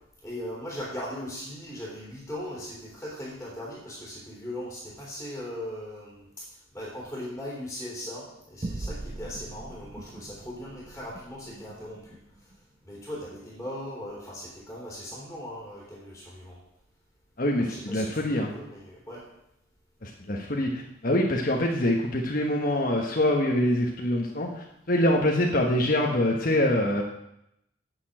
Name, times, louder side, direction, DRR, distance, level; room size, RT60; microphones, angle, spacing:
voice 1, 0.2-12.5 12.8-16.6 17.6-19.3, left 1 dB, 5° left, -4 dB, 3.1 m, -39 dB
sound 1, 8.6-13.4, right 2 dB, 35° right, 0.6 m, -41 dB
voice 2, 17.4-18.5 20.0-27.0, left 1 dB, 45° left, 0 dB, 1.3 m, -25 dB
8.9 x 7.1 x 8.6 m, 0.81 s
head